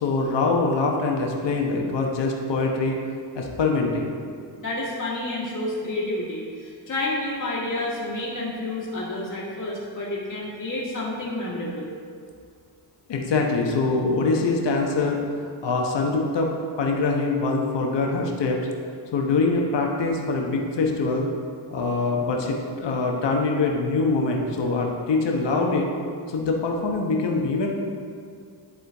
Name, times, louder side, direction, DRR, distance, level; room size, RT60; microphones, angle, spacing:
voice 1, 0.0-3.0 3.3-4.2 13.1-15.2 15.6-18.7 19.1-21.3 21.7-25.9 26.3-27.7, left 3 dB, 60° left, 0 dB, 1.1 m, -24 dB
voice 2, 4.6-11.9, left 2 dB, 40° left, -6 dB, 1.7 m, -29 dB
11.0 x 3.8 x 3.5 m, 2.2 s
cardioid pair, 60°, 48 cm